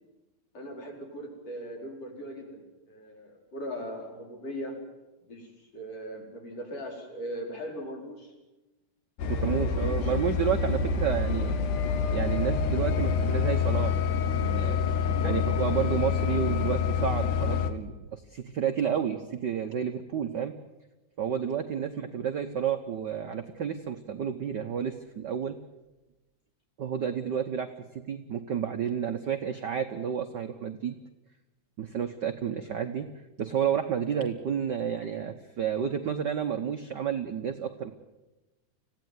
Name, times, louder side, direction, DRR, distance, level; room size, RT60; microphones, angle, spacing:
voice 1, 0.5-4.8 5.3-8.3 9.2-10.1 15.1-15.4, equal, 50° left, 0 dB, 5.9 m, -39 dB
sound 1, 9.2-17.7, left 6 dB, 85° left, 2.8 m, -27 dB
voice 2, 9.3-11.5 12.1-14.0 14.4-14.8 15.2-20.5 21.2-25.6 26.8-31.0 31.8-33.1 33.4-37.9, right 8 dB, 80° right, 7 dB, 0.9 m, -30 dB
26.0 x 16.5 x 9.4 m, 1.1 s
omnidirectional pair, 3.4 m